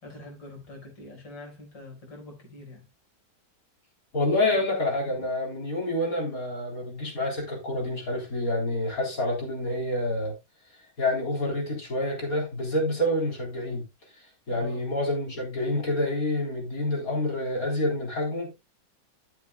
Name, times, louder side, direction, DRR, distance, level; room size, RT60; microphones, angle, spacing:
voice 1, 0.0-2.8 14.5-14.8, left 2 dB, 70° left, 5.5 m, -44 dB
voice 2, 4.1-10.4 11.0-13.8 14.5-18.6, left 1 dB, 45° left, 4.2 m, -28 dB
13.0 x 8.0 x 2.2 m
omnidirectional pair, 2.0 m